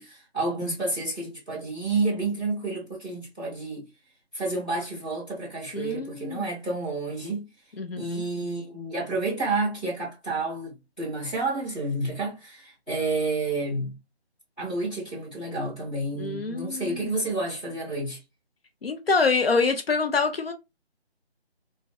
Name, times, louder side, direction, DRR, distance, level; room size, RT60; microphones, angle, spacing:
voice 1, 0.0-3.8 4.3-7.5 8.0-13.9 14.6-18.2, right 2 dB, 5° left, 1.0 m, -30 dB
voice 2, 5.7-6.5 7.8-8.2 16.2-17.1 18.8-20.5, left 4 dB, 65° left, 0.6 m, -26 dB
3.3 x 2.2 x 2.4 m
figure-of-eight pair, 170°, 32 cm